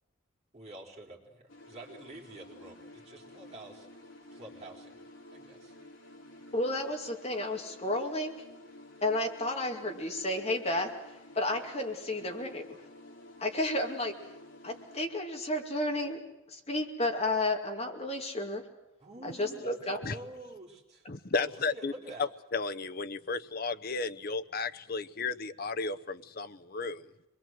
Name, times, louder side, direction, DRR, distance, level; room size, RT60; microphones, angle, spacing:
voice 1, 0.5-3.9 4.3-5.0 5.3-5.8 19.0-21.1 21.3-22.3, right 2 dB, 30° right, -2 dB, 4.4 m, -48 dB
sound 1, 1.5-15.0, left 1 dB, 65° left, 3.6 m, -52 dB
voice 2, 6.5-8.3 9.0-10.9 11.3-12.8 13.4-14.1 14.6-16.2 16.5-18.6 19.2-20.0, left 1 dB, 30° left, 2 dB, 2.4 m, -32 dB
voice 3, 21.1-21.9 22.5-27.0, left 4 dB, 45° left, 10 dB, 0.8 m, -34 dB
26.0 x 22.0 x 7.7 m, 0.98 s
head